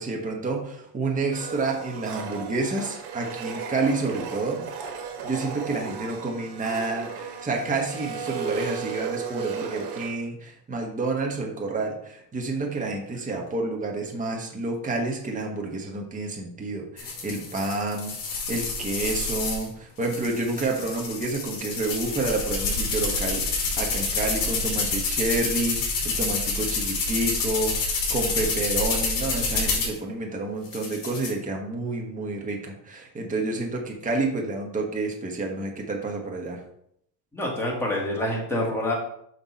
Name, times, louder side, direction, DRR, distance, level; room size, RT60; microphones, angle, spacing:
voice 1, 0.0-4.6 5.2-18.1 18.5-36.6, right 3 dB, 15° right, 1 dB, 1.3 m, -29 dB
Domestic sounds home sounds, 1.3-10.1, right 5 dB, 90° right, 1.6 m, -35 dB
sound 1, 17.0-19.7 20.0-30.0 30.7-31.3, left 4 dB, 45° left, 2.8 m, -28 dB
voice 2, 37.3-38.9, left 1 dB, 5° left, -3 dB, 2.3 m, -26 dB
6.0 x 5.8 x 4.1 m, 0.72 s
cardioid pair, 130°, 46 cm